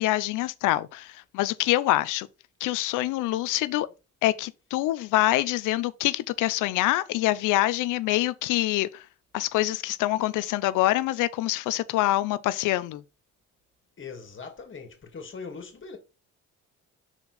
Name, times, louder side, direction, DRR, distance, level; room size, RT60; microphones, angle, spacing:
voice 1, 0.0-2.3 2.6-3.9 4.2-9.0 9.3-13.0, left 16 dB, 90° left, 0.5 m, -25 dB
voice 2, 14.0-16.0, left 5 dB, 40° left, 2.1 m, -41 dB
5.8 x 4.3 x 4.1 m
cardioid pair, 90°, 30 cm